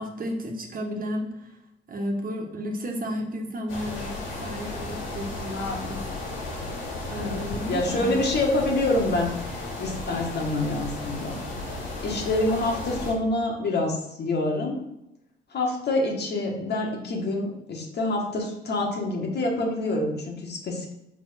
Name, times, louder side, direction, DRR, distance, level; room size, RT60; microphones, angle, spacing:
voice 1, 0.0-1.6 1.9-6.0 7.1-8.2, equal, 45° right, 2 dB, 1.5 m, -33 dB
sound 1, 3.7-13.1, left 2 dB, 90° left, 2.9 m, -34 dB
voice 2, 5.5-5.9 7.2-11.4 12.0-14.8 15.5-20.9, left 2 dB, 55° left, 0 dB, 1.9 m, -27 dB
5.7 x 4.6 x 5.8 m, 0.87 s
cardioid pair, 90°, 20 cm